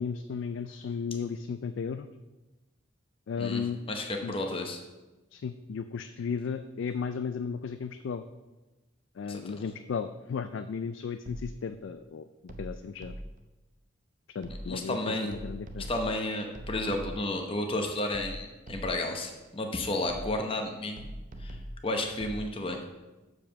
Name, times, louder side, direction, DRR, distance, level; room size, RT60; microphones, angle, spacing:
voice 1, 0.0-2.1 3.3-3.8 4.2-4.3 5.3-8.3 9.2-13.1 14.3-15.9, left 6 dB, 70° left, 9 dB, 0.3 m, -35 dB
voice 2, 3.9-4.8 9.2-9.5 14.7-15.3 15.9-21.1 21.4-21.6 21.8-22.8, left 1 dB, 25° left, 3 dB, 0.8 m, -32 dB
sound 1, 11.3-11.8 12.5-13.5 14.4-14.9 15.3-17.4 18.1-19.2 20.1-20.6 21.0-22.5, right 1 dB, 40° right, 0.7 m, -42 dB
7.2 x 4.9 x 6.5 m, 1.1 s
head